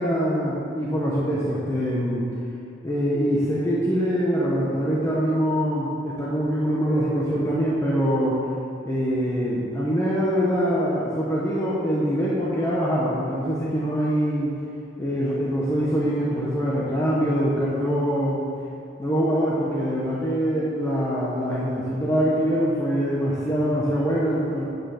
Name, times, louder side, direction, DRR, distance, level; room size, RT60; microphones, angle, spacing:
voice 1, 0.0-2.3 2.8-8.4 8.8-14.6 15.0-18.4 19.0-24.6, equal, 15° left, -7 dB, 1.1 m, -24 dB
8.9 x 6.0 x 7.3 m, 2.5 s
head